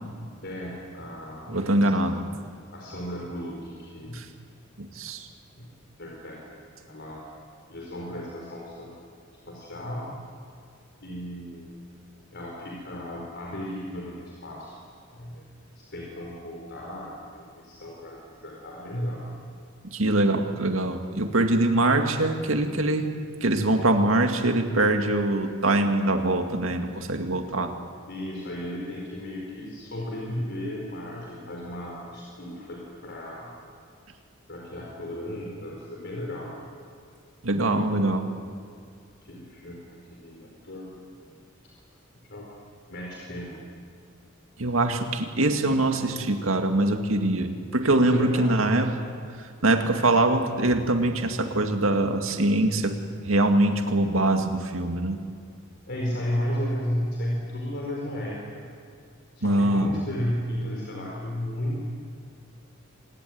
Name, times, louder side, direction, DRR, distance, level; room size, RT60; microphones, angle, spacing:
voice 1, 0.4-1.6 2.7-4.2 5.5-5.7 6.0-6.4 6.8-7.2 7.7-8.9 9.5-10.1 11.0-11.7 12.3-14.8 15.1-15.4 15.7-19.2 28.1-33.5 34.5-36.5 37.7-38.3 39.2-39.8 40.1-41.4 42.3-42.5 42.9-43.6 48.0-48.9 55.9-58.6 59.4-61.8, equal, 60° left, -2 dB, 4.7 m, -34 dB
voice 2, 1.5-2.2 4.8-5.2 19.9-23.1 23.4-27.7 37.4-38.2 44.6-48.9 49.6-53.0 53.3-55.2 59.4-59.9, right 2 dB, 80° right, 5 dB, 2.2 m, -23 dB
26.5 x 20.0 x 9.5 m, 2.3 s
head